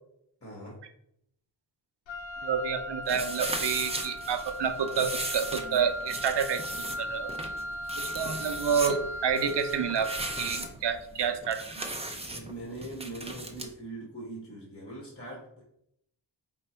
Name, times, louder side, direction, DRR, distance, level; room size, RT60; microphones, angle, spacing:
voice 1, 0.4-0.8 8.2-8.3 12.3-15.6, right 2 dB, 30° left, -2 dB, 1.3 m, -42 dB
Wind instrument woodwind instrument, 2.1-10.8, equal, 85° left, 0.6 m, -38 dB
voice 2, 2.4-6.6 7.0-7.3 8.0-11.9, right 7 dB, 65° right, 9 dB, 0.6 m, -29 dB
sound 1, 3.1-13.7, right 1 dB, 15° right, 0.5 m, -37 dB
4.3 x 2.3 x 4.2 m, 0.74 s
wide cardioid pair, 95°, 45 cm